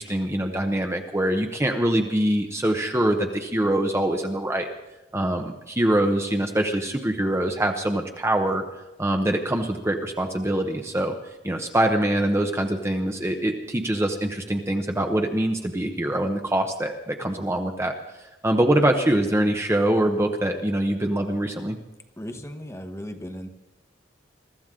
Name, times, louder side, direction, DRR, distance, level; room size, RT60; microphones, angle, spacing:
voice 1, 0.0-4.7 5.1-8.6 9.0-11.2 11.4-21.8, right 1 dB, 15° right, 4 dB, 0.9 m, -24 dB
voice 2, 22.2-23.5, equal, 15° left, 6 dB, 1.1 m, -36 dB
22.5 x 13.5 x 3.7 m, 1.0 s
head